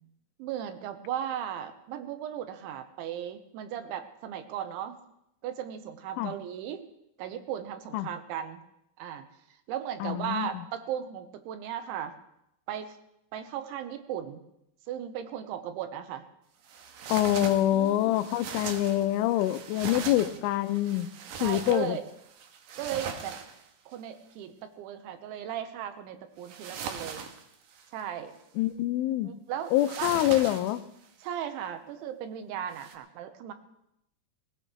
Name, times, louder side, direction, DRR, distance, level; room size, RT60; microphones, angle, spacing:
voice 1, 0.4-5.0 5.4-6.9 7.2-8.6 9.0-9.2 9.7-12.1 12.7-13.0 13.3-14.4 14.9-16.2 17.7-18.2 19.9-20.4 21.4-22.0 22.8-23.3 23.9-27.2 27.9-28.3 29.2-30.2 31.2-33.5, right 10 dB, 90° right, 8 dB, 3.4 m, -36 dB
voice 2, 10.0-10.5 17.1-21.1 21.4-22.0 28.6-29.3 29.7-30.8, left 14 dB, 90° left, 12 dB, 3.1 m, -26 dB
sound 1, 16.6-23.9 26.4-28.0 29.7-31.1 32.7-32.9, right 7 dB, 75° right, 2.0 m, -40 dB
20.0 x 17.5 x 3.2 m, 0.78 s
omnidirectional pair, 5.4 m